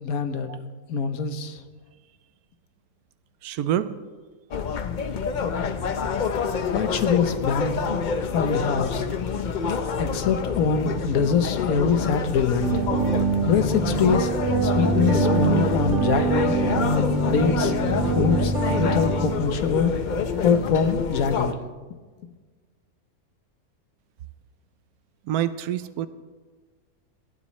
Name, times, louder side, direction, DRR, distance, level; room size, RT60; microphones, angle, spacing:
voice 1, 0.0-0.5 0.9-1.6 6.7-7.9 8.2-9.1 10.0-12.8 13.5-14.3 14.6-16.5 17.3-17.7 18.0-19.9 20.4-21.5, left 6 dB, 75° left, 9 dB, 1.3 m, -24 dB
voice 2, 3.4-3.9 25.3-26.1, right 11 dB, 85° right, 13 dB, 1.1 m, -26 dB
sound 1, 4.5-21.5, left 6 dB, 55° left, 0.5 m, -27 dB
sound 2, 12.6-19.3, right 3 dB, 35° right, 3.2 m, -24 dB
18.5 x 12.5 x 3.2 m, 1.4 s
omnidirectional pair, 1.5 m